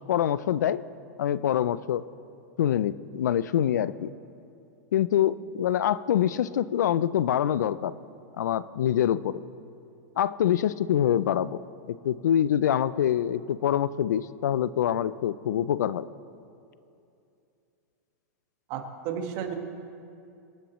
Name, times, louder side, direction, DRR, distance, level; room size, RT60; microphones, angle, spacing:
voice 1, 0.1-0.8 1.2-2.0 2.6-4.1 4.9-7.9 8.4-9.4 10.2-11.6 11.9-16.1, left 10 dB, 90° left, 17 dB, 0.4 m, -25 dB
voice 2, 18.7-19.5, right 8 dB, 45° right, 4 dB, 1.6 m, -33 dB
26.5 x 10.0 x 3.1 m, 2.6 s
supercardioid pair, 140°, 9 cm